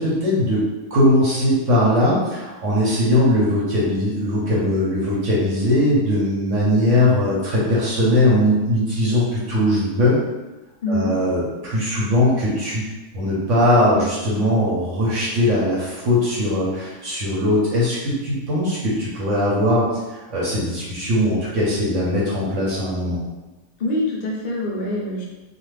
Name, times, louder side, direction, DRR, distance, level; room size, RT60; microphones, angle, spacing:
voice 1, 0.0-10.2 10.9-23.2, left 1 dB, 60° right, -6 dB, 0.9 m, -20 dB
voice 2, 10.8-11.1 13.9-14.1 23.8-25.3, left 1 dB, 75° left, -3 dB, 0.4 m, -24 dB
2.5 x 2.4 x 3.2 m, 1.1 s
omnidirectional pair, 1.7 m